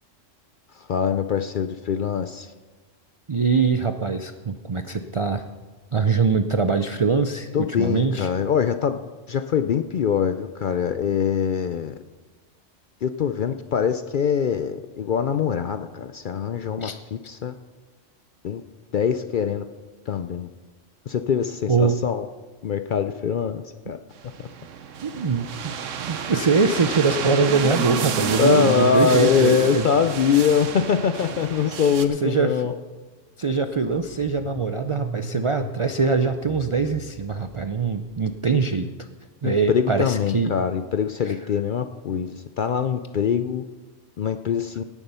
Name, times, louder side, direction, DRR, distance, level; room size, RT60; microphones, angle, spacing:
voice 1, 0.7-2.5 7.5-9.0 9.3-11.9 13.0-17.5 18.4-18.6 18.9-19.6 20.1-20.5 21.1-22.3 22.6-24.0 28.4-32.7 39.4-43.6 44.2-44.8, left 7 dB, 60° left, 9 dB, 0.5 m, -23 dB
voice 2, 3.3-5.4 5.9-7.5 7.8-8.3 16.8-17.0 21.7-22.0 25.0-25.7 26.1-29.9 32.2-32.5 33.4-38.9 39.4-40.5 41.2-41.3, right 4 dB, 55° right, 8 dB, 0.3 m, -22 dB
sound 1, 24.2-32.1, right 7 dB, 80° right, 1.2 m, -30 dB
Car / Engine starting, 32.5-32.6 32.9-38.1, right 2 dB, 35° left, 2.8 m, -39 dB
17.5 x 7.2 x 5.6 m, 1.3 s
omnidirectional pair, 1.3 m